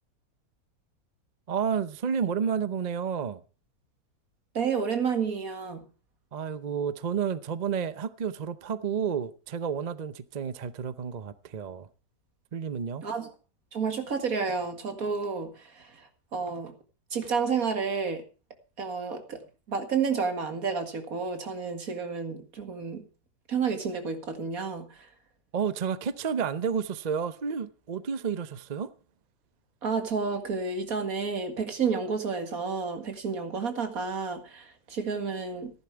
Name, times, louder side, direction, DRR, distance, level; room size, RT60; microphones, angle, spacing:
voice 1, 1.5-3.4 6.3-11.9 12.5-13.0 25.5-28.9, right 7 dB, 40° right, 0.6 m, -31 dB
voice 2, 4.5-5.8 13.0-13.3 13.7-15.5 15.8-15.9 16.3-16.7 17.1-18.2 18.8-19.4 19.7-23.0 23.5-24.9 29.8-35.7, right 5 dB, 65° right, 2.3 m, -30 dB
14.5 x 11.0 x 4.6 m
omnidirectional pair, 1.6 m